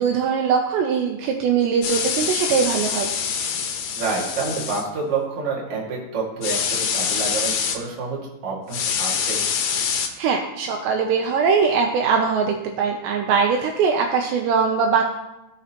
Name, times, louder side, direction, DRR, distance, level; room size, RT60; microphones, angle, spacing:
voice 1, 0.0-3.1 10.2-15.0, right 6 dB, 80° right, 2 dB, 2.7 m, -21 dB
sound 1, 1.8-4.8 6.4-7.8 8.7-10.1, left 7 dB, 80° left, 2.1 m, -25 dB
voice 2, 3.9-9.4, right 4 dB, 45° right, -4 dB, 2.2 m, -28 dB
16.0 x 6.3 x 2.9 m, 0.93 s
omnidirectional pair, 5.3 m